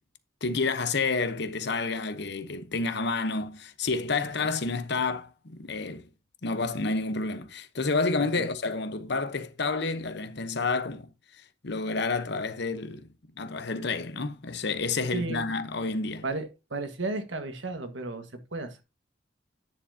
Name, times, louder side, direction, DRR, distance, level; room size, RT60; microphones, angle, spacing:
voice 1, 0.4-6.1 6.4-11.1 11.6-13.1 13.4-16.2, left 3 dB, 65° left, 1.0 m, -29 dB
voice 2, 15.1-15.5 16.2-18.8, right 2 dB, 85° right, 1.6 m, -34 dB
9.8 x 6.9 x 2.8 m
head